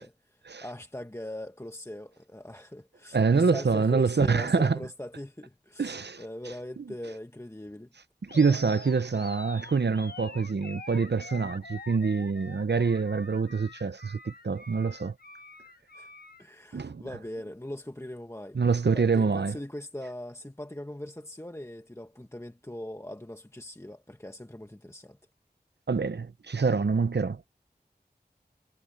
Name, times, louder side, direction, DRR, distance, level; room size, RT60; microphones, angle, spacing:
voice 1, 0.0-7.9 15.9-16.1 16.4-18.6 18.9-25.2, left 1 dB, 15° left, 1.1 m, -41 dB
voice 2, 3.1-4.8 5.8-6.2 8.2-15.1 16.7-17.0 18.5-19.5 25.9-27.4, right 5 dB, 90° right, 0.7 m, -26 dB
Animal, 8.3-16.4, left 3 dB, 65° left, 1.2 m, -46 dB
wide cardioid pair, 45°, 17 cm